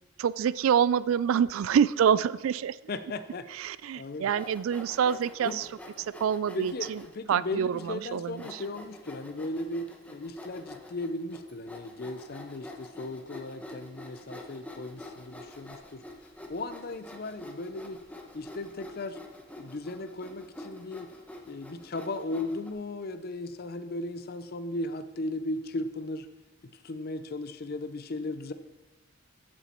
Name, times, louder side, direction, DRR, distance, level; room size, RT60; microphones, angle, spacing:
voice 1, 0.2-2.8 3.5-5.7 6.0-7.0 7.3-8.6, right 8 dB, 90° right, 18 dB, 0.3 m, -26 dB
voice 2, 2.9-3.5 4.0-4.3 5.4-5.6 6.5-16.0 16.5-18.0 18.3-19.2 19.6-21.1 21.5-26.3 26.8-28.5, left 2 dB, 50° left, 10 dB, 0.5 m, -36 dB
Sawing, 4.3-7.2 7.8-7.9 8.4-22.7, left 1 dB, 5° left, 1.0 m, -47 dB
14.5 x 7.0 x 4.4 m, 1.1 s
head